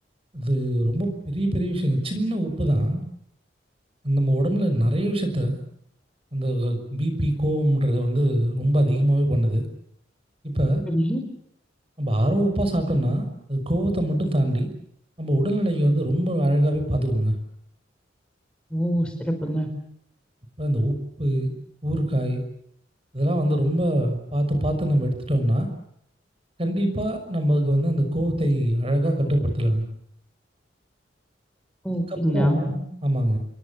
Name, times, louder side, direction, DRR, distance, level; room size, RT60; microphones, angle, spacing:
voice 1, 0.3-3.0 4.0-5.6 6.3-9.7 10.4-10.8 12.0-14.7 15.2-17.4 20.6-21.5 21.8-22.4 23.1-25.7 26.6-29.9 32.1-33.4, right 1 dB, 30° right, 7 dB, 6.1 m, -23 dB
voice 2, 10.9-11.2 18.7-19.7 31.8-32.7, equal, 5° left, 5 dB, 4.5 m, -24 dB
29.0 x 22.5 x 7.3 m, 0.71 s
head